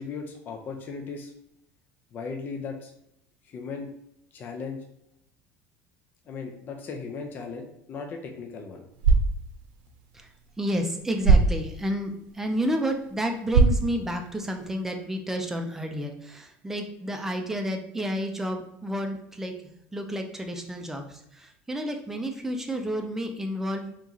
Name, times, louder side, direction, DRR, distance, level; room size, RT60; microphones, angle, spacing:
voice 1, 0.0-1.3 2.1-2.9 3.4-3.9 4.3-4.8 6.3-8.8, left 5 dB, 35° left, 3 dB, 0.5 m, -37 dB
sound 1, 8.8-14.9, right 4 dB, 80° right, 0.7 m, -26 dB
voice 2, 10.1-23.9, equal, 5° right, 4 dB, 0.5 m, -31 dB
4.5 x 2.9 x 2.7 m, 0.75 s
cardioid pair, 135°, 5 cm